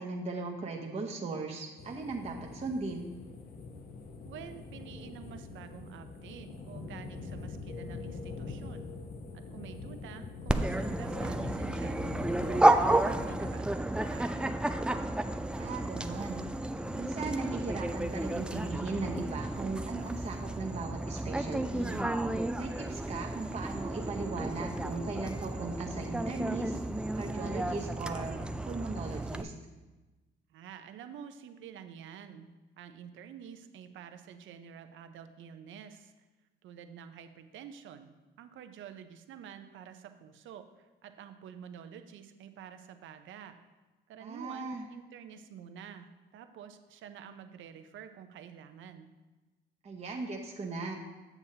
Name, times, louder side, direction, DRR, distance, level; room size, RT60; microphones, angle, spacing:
voice 1, 0.0-3.1 15.6-16.4 16.9-22.0 22.6-26.8 27.2-28.4 28.7-29.5 44.2-44.9 49.8-50.9, right 3 dB, 30° right, 0 dB, 0.8 m, -38 dB
sound 1, 1.8-13.5, left 4 dB, 50° left, 0.9 m, -43 dB
voice 2, 4.2-8.9 9.3-14.6 30.5-32.5 32.8-36.1 36.6-43.6 44.1-49.1, right 8 dB, 75° right, 9 dB, 0.6 m, -49 dB
Dog, 10.5-29.4, right 1 dB, 5° right, 0.3 m, -32 dB
8.1 x 7.0 x 2.8 m, 1.2 s
cardioid pair, 90°, 20 cm